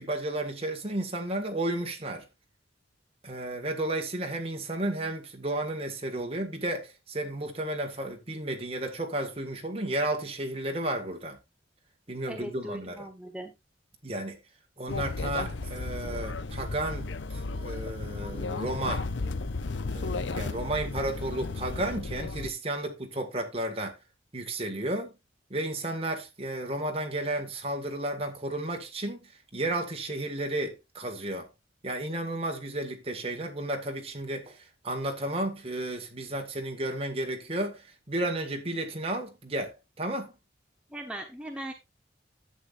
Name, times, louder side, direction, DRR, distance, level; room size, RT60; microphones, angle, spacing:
voice 1, 0.0-2.3 3.2-11.4 12.1-13.1 14.0-14.4 14.8-19.1 19.9-24.0 24.3-25.1 25.5-31.5 31.8-40.3, right 1 dB, 30° right, 1.9 m, -33 dB
voice 2, 12.3-13.5 40.9-41.7, right 1 dB, 5° right, 1.0 m, -39 dB
sound 1, 14.9-22.5, left 3 dB, 75° left, 0.7 m, -34 dB
11.0 x 8.2 x 2.5 m
head